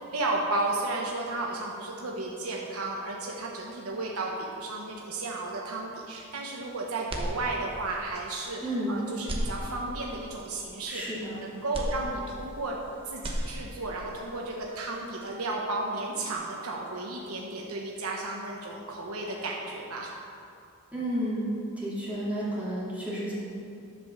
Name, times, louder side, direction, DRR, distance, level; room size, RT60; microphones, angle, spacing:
voice 1, 0.1-11.0 11.4-12.8 13.1-20.1, right 2 dB, 90° right, -2 dB, 1.1 m, -33 dB
sound 1, 7.1-8.0 8.4-8.5 9.2-10.2 11.7-12.8 13.1-14.0, equal, 25° right, 0.9 m, -34 dB
voice 2, 8.6-9.0 10.9-11.4 20.9-21.5 21.8-23.3, equal, 5° right, -10 dB, 2.4 m, -31 dB
11.0 x 5.3 x 6.7 m, 2.5 s
head